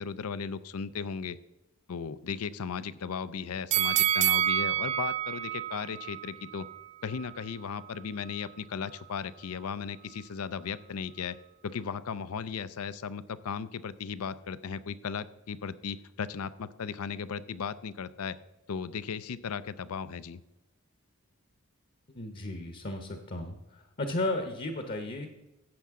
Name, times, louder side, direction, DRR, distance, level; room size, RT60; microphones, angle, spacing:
voice 1, 0.0-1.4 1.9-6.7 7.0-11.4 11.6-18.4 18.7-20.4, left 6 dB, 85° left, 16 dB, 0.5 m, -36 dB
sound 1, 3.7-6.8 7.2-7.3, right 12 dB, 30° right, 0.3 m, -28 dB
voice 2, 22.1-23.6 24.0-25.3, left 2 dB, 45° left, 6 dB, 0.9 m, -34 dB
13.5 x 8.4 x 3.7 m, 1.0 s
head